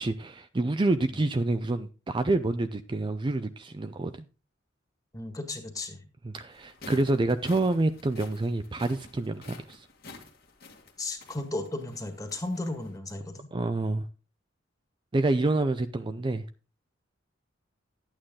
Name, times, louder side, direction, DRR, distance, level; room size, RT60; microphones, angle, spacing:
voice 1, 0.0-4.3 6.2-9.9 13.5-14.1 15.1-16.5, right 2 dB, 25° right, 0.4 m, -27 dB
voice 2, 5.1-6.0 11.0-13.5, left 2 dB, 20° left, 1.7 m, -35 dB
sound 1, 6.5-13.0, left 3 dB, 50° left, 1.8 m, -50 dB
11.0 x 8.8 x 3.7 m
head